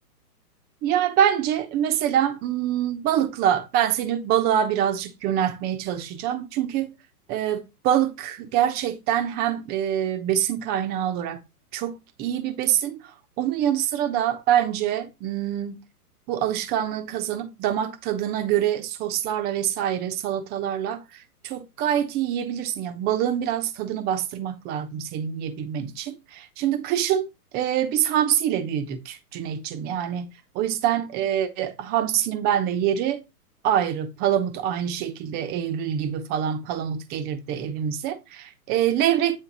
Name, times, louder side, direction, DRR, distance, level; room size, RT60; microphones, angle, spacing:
voice 1, 0.8-6.9 7.3-11.4 11.7-13.0 13.4-15.8 16.3-27.3 27.5-33.2 33.6-39.4, right 10 dB, 20° right, 0.8 m, -25 dB
9.3 x 3.7 x 4.0 m
hypercardioid pair, 135°, 48 cm